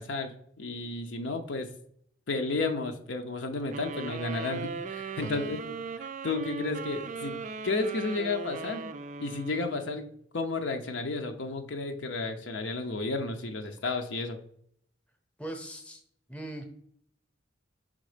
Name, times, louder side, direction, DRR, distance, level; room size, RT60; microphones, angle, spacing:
voice 1, 0.0-1.7 2.3-7.4 7.6-8.9 9.2-14.4, left 3 dB, 70° left, 5 dB, 0.7 m, -32 dB
sound 1, 3.7-10.1, right 4 dB, 40° right, 0.3 m, -38 dB
voice 2, 5.1-5.5 15.4-16.0 16.3-16.6, right 1 dB, 5° left, 5 dB, 0.8 m, -40 dB
5.2 x 3.6 x 5.0 m, 0.66 s
head